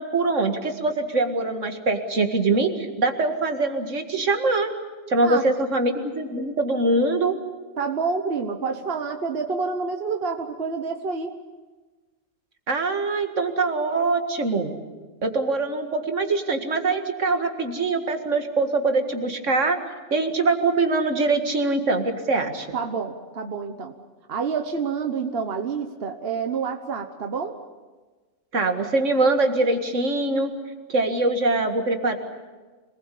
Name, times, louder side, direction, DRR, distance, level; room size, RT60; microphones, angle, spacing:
voice 1, 0.0-4.7 5.1-7.3 12.7-14.8 15.2-19.8 20.1-22.8 28.5-30.5 30.9-32.2, right 3 dB, 75° right, 5 dB, 2.3 m, -23 dB
voice 2, 7.8-11.3 22.7-23.9 24.3-27.6, right 5 dB, 55° right, 4 dB, 1.4 m, -28 dB
26.0 x 20.0 x 8.4 m, 1.3 s
omnidirectional pair, 1.3 m